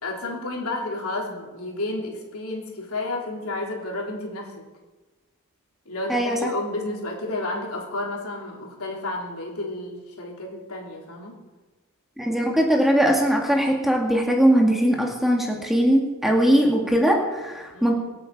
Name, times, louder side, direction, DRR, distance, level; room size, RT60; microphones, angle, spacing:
voice 1, 0.0-4.6 5.8-11.3 17.7-17.9, left 2 dB, 75° left, -1 dB, 3.3 m, -31 dB
voice 2, 6.1-6.5 12.2-17.9, equal, ahead, 0 dB, 2.0 m, -20 dB
25.5 x 8.6 x 4.8 m, 1.2 s
head